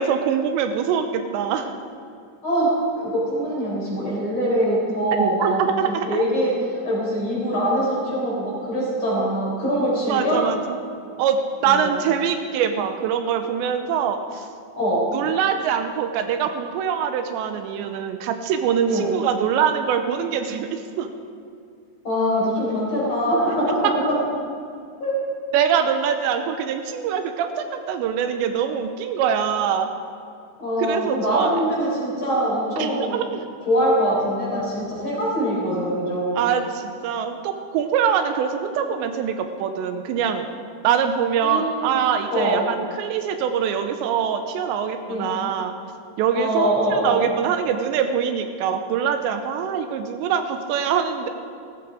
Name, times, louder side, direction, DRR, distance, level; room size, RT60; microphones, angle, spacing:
voice 1, 0.0-1.7 5.2-6.2 10.1-10.8 11.2-14.5 15.1-21.1 23.8-23.9 25.5-29.9 30.8-31.6 32.8-33.4 36.4-40.5 40.8-45.7 46.2-51.3, right 7 dB, 85° right, 7 dB, 2.9 m, -23 dB
voice 2, 2.4-6.5 6.8-10.4 11.6-12.0 14.7-15.1 18.9-19.2 22.0-24.2 25.0-25.1 30.6-33.2 33.6-36.5 41.4-42.0 42.3-42.6 45.1-45.4 46.3-47.2, equal, 30° left, -5 dB, 4.6 m, -23 dB
16.5 x 14.0 x 4.9 m, 2.4 s
omnidirectional pair, 5.2 m